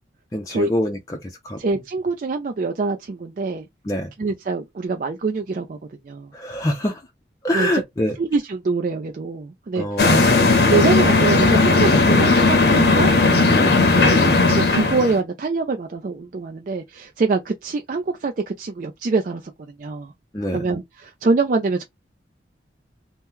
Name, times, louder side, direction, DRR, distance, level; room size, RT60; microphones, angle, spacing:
voice 1, 0.3-1.6 3.8-4.1 6.3-7.0 7.4-8.2 9.7-10.4 13.5-13.8 20.3-20.6, left 1 dB, 20° left, 0.5 m, -25 dB
voice 2, 1.6-3.7 4.2-5.8 6.1-6.3 7.5-7.7 8.2-9.9 10.7-13.1 13.9-19.4 19.8-20.1 20.5-21.8, right 3 dB, 45° right, 0.4 m, -24 dB
sound 1, 10.0-15.2, left 3 dB, 60° left, 0.7 m, -16 dB
2.8 x 2.1 x 3.6 m
head